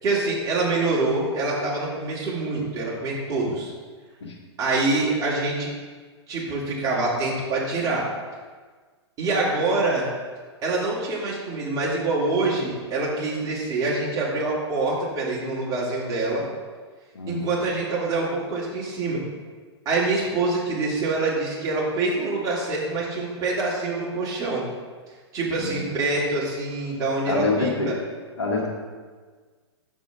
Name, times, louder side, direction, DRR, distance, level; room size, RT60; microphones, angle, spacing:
voice 1, 0.0-3.7 4.6-5.7 6.3-8.1 9.2-10.1 10.6-16.5 17.3-19.2 19.8-24.6 25.3-27.9, right 3 dB, 25° right, -6 dB, 2.5 m, -25 dB
voice 2, 17.1-17.5 25.6-25.8 27.3-28.0 28.4-28.7, left 3 dB, 70° left, -2 dB, 1.8 m, -26 dB
7.8 x 7.2 x 3.7 m, 1.5 s
figure-of-eight pair, 110°, 15 cm